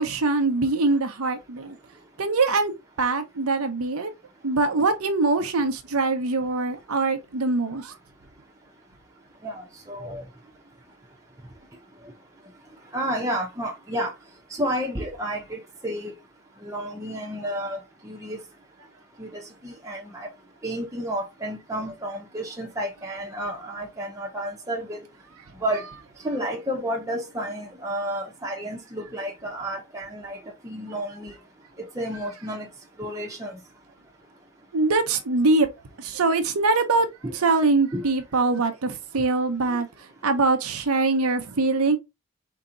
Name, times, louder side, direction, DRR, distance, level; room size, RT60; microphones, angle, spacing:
voice 1, 0.0-1.8 2.2-2.7 3.0-4.1 4.4-7.9 34.7-35.7 36.0-37.1 37.3-39.9 40.2-42.0, right 3 dB, 90° right, 0.8 m, -23 dB
voice 2, 9.4-10.2 12.9-14.1 14.5-16.1 16.6-17.8 18.0-18.4 19.2-20.3 20.6-25.0 25.6-25.9 26.2-30.4 30.6-31.3 32.0-32.7 33.0-33.5 37.2-37.3 37.9-38.0, equal, 15° right, 0.8 m, -31 dB
4.6 x 2.9 x 3.8 m
head